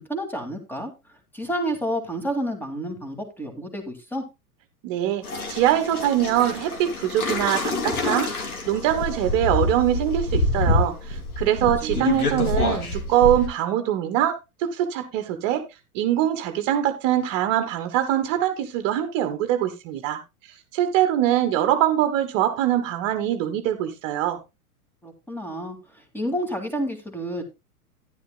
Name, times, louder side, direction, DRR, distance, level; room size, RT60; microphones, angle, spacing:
voice 1, 0.1-0.9 1.3-4.2 11.8-12.1 25.0-27.4, equal, 5° left, 2.3 m, -30 dB
voice 2, 4.8-8.3 8.7-15.6 15.9-20.2 20.7-24.4, right 11 dB, 40° right, 1.4 m, -23 dB
sound 1, 5.2-13.5, left 2 dB, 70° left, 2.8 m, -26 dB
13.5 x 10.5 x 2.2 m
figure-of-eight pair, 95°, 45 cm